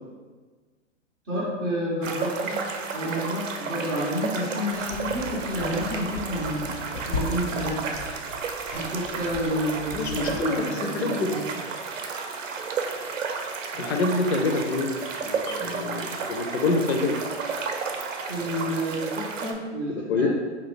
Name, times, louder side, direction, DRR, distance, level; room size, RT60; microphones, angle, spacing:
voice 1, 1.3-2.6 2.9-8.0 8.7-11.5 18.3-20.3, equal, 10° right, -10 dB, 0.3 m, -30 dB
sound 1, 2.0-19.5, right 5 dB, 85° right, 0.5 m, -32 dB
sound 2, 4.7-10.4, left 3 dB, 80° left, 1.0 m, -37 dB
voice 2, 9.9-11.3 13.7-17.1 19.9-20.3, left 3 dB, 60° left, 3 dB, 0.6 m, -27 dB
2.9 x 2.3 x 3.7 m, 1.4 s
hypercardioid pair, 120°, 37 cm